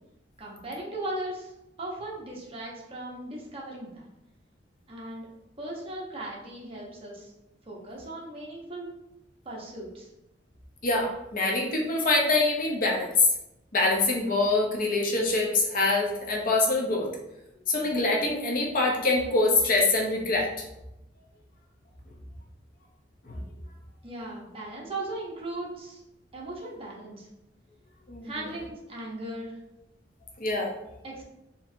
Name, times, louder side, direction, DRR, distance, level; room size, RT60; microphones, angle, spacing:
voice 1, 0.4-1.5 1.8-4.1 4.9-5.3 5.6-7.3 7.7-8.9 9.4-10.1 24.0-26.0 26.3-27.3 28.2-29.6 31.0-31.2, right 1 dB, 30° right, -3 dB, 0.9 m, -37 dB
voice 2, 10.8-13.3 13.7-17.1 17.7-20.5 23.3-23.4 28.1-28.3 30.4-30.7, left 3 dB, 50° left, 0 dB, 0.7 m, -24 dB
4.3 x 2.7 x 2.6 m, 0.88 s
head